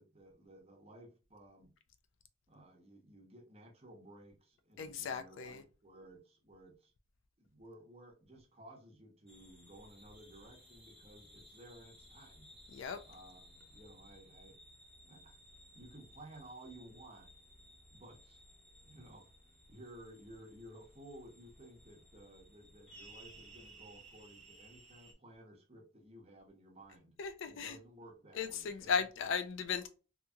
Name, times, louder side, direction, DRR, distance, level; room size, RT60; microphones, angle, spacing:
voice 1, 0.0-1.7 2.5-6.9 7.4-12.5 13.0-14.6 15.0-15.4 15.7-17.3 17.9-18.4 18.8-19.3 19.7-27.2 27.4-29.1, right 1 dB, 30° right, 0.8 m, -56 dB
voice 2, 4.8-5.6 12.7-13.0 27.2-27.8 28.3-29.9, left 6 dB, 60° left, 0.3 m, -36 dB
sound 1, 9.3-25.1, right 1 dB, ahead, 0.9 m, -59 dB
2.8 x 2.6 x 2.3 m
head